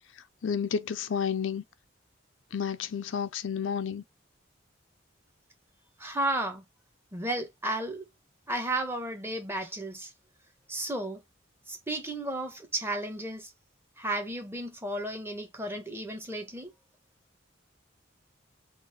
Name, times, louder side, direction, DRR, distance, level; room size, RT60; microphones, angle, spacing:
voice 1, 0.4-1.6 2.5-4.0, left 7 dB, 75° left, 0.5 m, -31 dB
voice 2, 6.0-6.6 7.1-8.0 8.5-10.1 10.7-11.2 11.7-13.5 14.0-16.7, right 1 dB, 10° right, 1.0 m, -33 dB
4.0 x 2.5 x 4.6 m
head